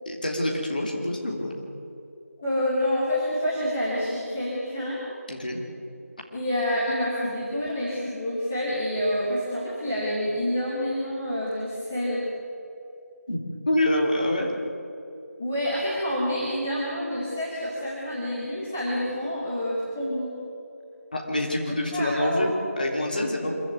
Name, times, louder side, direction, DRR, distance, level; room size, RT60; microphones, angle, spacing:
voice 1, 0.1-1.5 5.3-5.6 13.3-13.4 13.7-14.5 21.1-23.6, left 1 dB, 30° left, 0 dB, 3.0 m, -26 dB
voice 2, 2.4-5.0 6.3-12.2 15.4-20.3 21.6-22.4, left 1 dB, 5° left, -9 dB, 1.0 m, -28 dB
25.0 x 15.0 x 9.4 m, 2.7 s
figure-of-eight pair, 175°, 9 cm